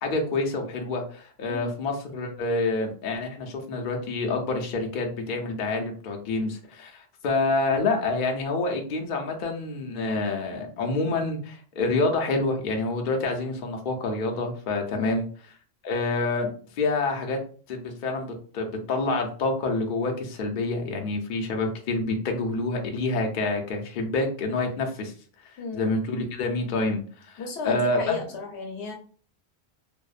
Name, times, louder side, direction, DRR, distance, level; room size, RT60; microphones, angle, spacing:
voice 1, 0.0-15.3 15.8-17.4 17.7-25.1 25.4-28.2, left 3 dB, 60° left, 2 dB, 0.6 m, -27 dB
voice 2, 14.9-15.2 25.6-25.9 27.4-28.9, left 4 dB, 75° left, 1 dB, 0.9 m, -33 dB
2.6 x 2.0 x 2.4 m, 0.42 s
omnidirectional pair, 1.1 m